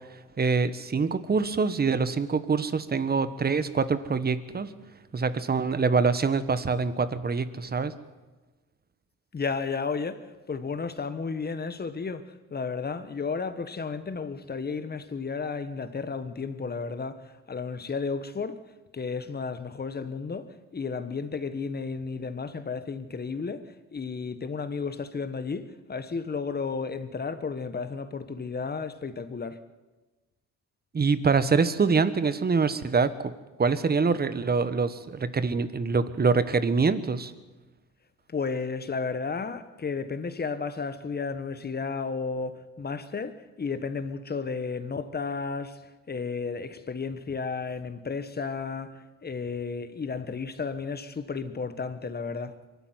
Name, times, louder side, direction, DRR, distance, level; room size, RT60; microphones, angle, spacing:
voice 1, 0.4-4.7 5.1-7.9 30.9-33.3 33.6-37.3, right 4 dB, 30° right, 1.3 m, -25 dB
voice 2, 9.3-18.6 18.9-29.6 38.3-45.8 46.1-52.6, left 5 dB, 30° left, 1.4 m, -33 dB
23.5 x 12.0 x 9.4 m
cardioid pair, 90°, 30 cm